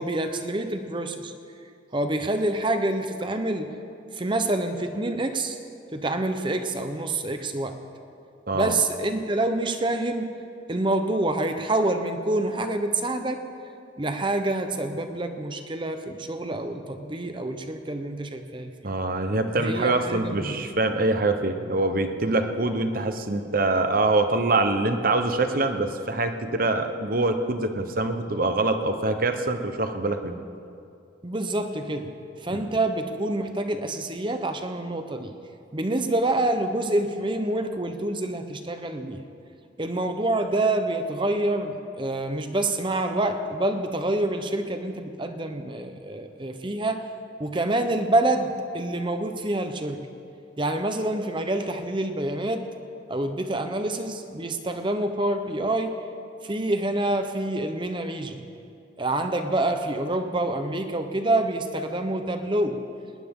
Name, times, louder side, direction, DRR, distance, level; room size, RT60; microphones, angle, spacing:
voice 1, 0.0-1.3 1.9-3.7 4.1-5.6 5.9-7.8 8.5-10.4 10.7-13.5 14.0-18.9 19.6-20.6 31.2-35.3 35.7-39.3 39.8-47.1 47.4-50.1 50.6-52.7 53.1-56.0 56.4-58.5 59.0-62.8, right 2 dB, 25° right, 7 dB, 0.8 m, -27 dB
voice 2, 18.8-30.3, right 2 dB, 45° right, 7 dB, 1.0 m, -24 dB
19.5 x 19.0 x 3.8 m, 2.5 s
head